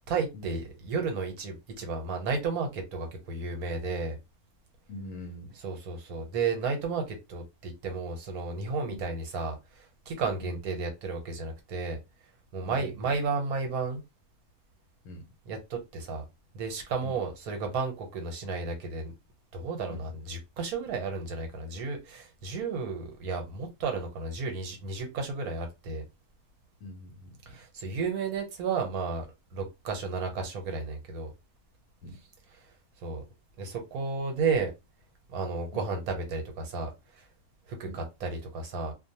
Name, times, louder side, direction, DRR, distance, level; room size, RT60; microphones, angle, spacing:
voice 1, 0.1-4.2 5.6-12.0 12.5-14.0 15.5-16.2 16.5-19.1 19.5-26.0 27.5-29.3 29.5-31.3 33.0-33.2 33.6-34.7 35.3-36.9 37.2-37.3 37.7-38.9, right 4 dB, 75° right, 1.2 m, -33 dB
voice 2, 4.9-5.5 8.9-9.0 10.4-10.6 12.7-13.1 15.0-15.3 17.0-17.2 19.9-20.0 26.8-27.4 32.0-32.2 35.7-35.9 37.8-38.0, left 1 dB, 75° left, 1.1 m, -43 dB
2.6 x 2.2 x 2.7 m
omnidirectional pair, 1.6 m